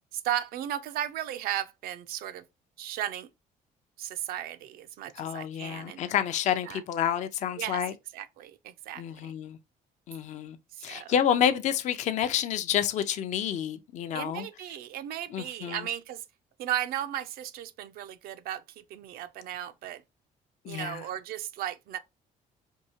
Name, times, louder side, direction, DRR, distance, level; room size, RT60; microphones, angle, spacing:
voice 1, 0.1-2.4 2.8-3.3 4.0-6.0 6.7-6.8 7.6-7.8 8.1-9.3 10.7-11.1 14.1-16.2 16.6-20.0 20.7-22.0, right 11 dB, 80° right, 0.4 m, -35 dB
voice 2, 5.2-7.9 9.0-9.6 10.1-14.5 15.3-15.8 20.6-21.0, left 9 dB, 50° left, 0.4 m, -29 dB
4.5 x 2.7 x 2.7 m
cardioid pair, 145°, 15 cm